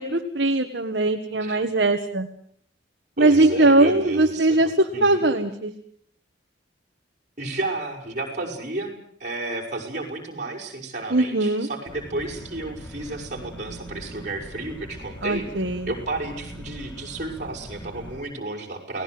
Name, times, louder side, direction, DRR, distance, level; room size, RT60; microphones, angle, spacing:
voice 1, 0.0-2.3 3.2-5.7 11.1-11.7 15.2-15.9, right 2 dB, 60° right, 4 dB, 1.8 m, -20 dB
voice 2, 3.2-5.2 7.4-8.9 9.2-15.5 15.8-19.0, right 2 dB, 40° right, -1 dB, 6.3 m, -32 dB
sound 1, 11.9-18.2, equal, 5° left, 3.0 m, -41 dB
30.0 x 19.0 x 7.9 m, 0.64 s
head